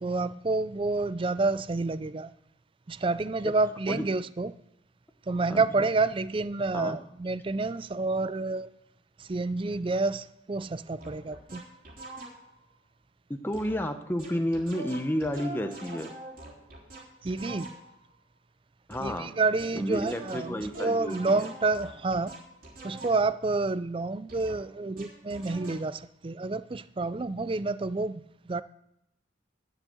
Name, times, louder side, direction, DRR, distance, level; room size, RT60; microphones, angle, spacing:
voice 1, 0.0-2.3 2.9-4.5 5.3-8.7 9.2-11.6 17.2-17.7 19.0-22.3 22.8-28.6, right 3 dB, 25° right, 15 dB, 0.4 m, -29 dB
voice 2, 5.5-5.9 6.7-7.0 13.4-16.1 18.9-19.3 19.7-21.5, equal, 10° left, 6 dB, 0.7 m, -31 dB
sound 1, 11.0-12.6 13.5-13.9 14.2-18.1 18.9-23.4 24.3-25.9, right 1 dB, 45° right, 3.5 m, -44 dB
11.5 x 6.4 x 7.7 m, 0.81 s
head